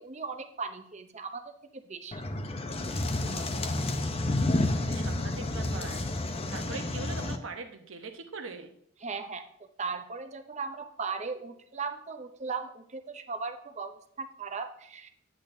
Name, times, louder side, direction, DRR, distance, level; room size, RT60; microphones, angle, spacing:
voice 1, 0.0-2.2 9.0-9.5 9.8-15.1, right 4 dB, 35° right, 8 dB, 0.7 m, -37 dB
sound 1, 2.1-7.4, left 2 dB, 30° left, 0.6 m, -30 dB
voice 2, 3.2-3.8 4.9-6.1 6.5-8.7, right 4 dB, 80° right, 6 dB, 1.0 m, -42 dB
10.5 x 8.4 x 2.7 m, 0.68 s
head